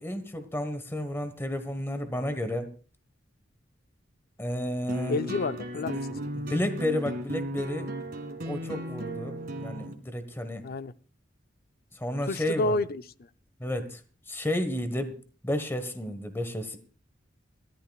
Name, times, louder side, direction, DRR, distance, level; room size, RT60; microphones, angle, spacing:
voice 1, 0.0-2.7 4.4-5.2 6.3-7.9 8.4-10.6 11.9-12.8 13.6-14.0 14.3-15.2 15.4-16.8, left 1 dB, 10° left, 9 dB, 1.3 m, -32 dB
sound 1, 4.9-9.9, equal, 50° right, 2.0 m, -35 dB
voice 2, 5.1-6.2 10.6-10.9 12.2-13.0, left 2 dB, 50° left, 12 dB, 0.6 m, -29 dB
21.0 x 14.5 x 2.4 m, 0.38 s
head